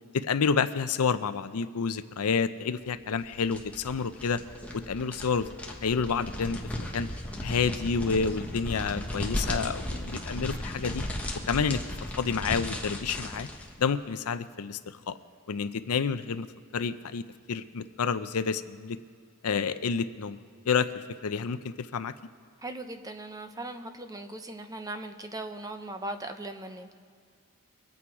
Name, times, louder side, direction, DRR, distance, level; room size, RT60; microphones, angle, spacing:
voice 1, 0.1-4.4 4.7-5.5 5.8-7.1 7.4-11.0 11.5-11.8 12.2-13.5 13.8-15.2 15.5-16.5 16.7-19.0 19.4-20.4 20.7-22.1, left 5 dB, 75° left, 12 dB, 0.5 m, -29 dB
sound 1, 3.1-13.8, left 1 dB, 5° left, 1.2 m, -36 dB
voice 2, 22.6-27.0, right 2 dB, 15° right, 7 dB, 0.8 m, -39 dB
23.5 x 8.6 x 4.8 m, 2.1 s
head